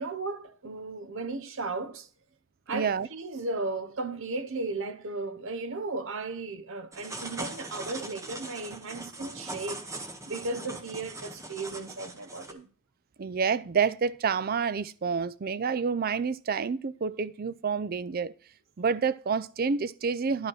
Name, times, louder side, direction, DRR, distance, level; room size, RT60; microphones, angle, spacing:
voice 1, 0.0-2.1 2.7-12.7, right 3 dB, 60° right, 0.9 m, -35 dB
voice 2, 2.7-3.1 13.2-18.3 18.8-20.5, right 5 dB, 40° right, 0.4 m, -28 dB
sound 1, 6.9-12.5, right 2 dB, 15° right, 0.9 m, -41 dB
11.0 x 5.2 x 6.2 m
head